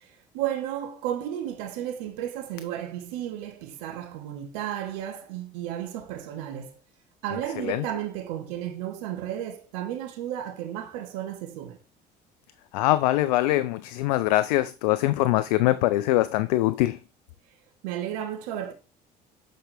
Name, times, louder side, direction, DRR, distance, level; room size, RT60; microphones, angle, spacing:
voice 1, 0.0-6.8 7.2-11.8 17.8-18.7, right 11 dB, 80° right, 1.3 m, -33 dB
voice 2, 12.7-17.0, left 16 dB, 85° left, 0.4 m, -23 dB
7.8 x 4.7 x 3.3 m
hypercardioid pair, 70°, 21 cm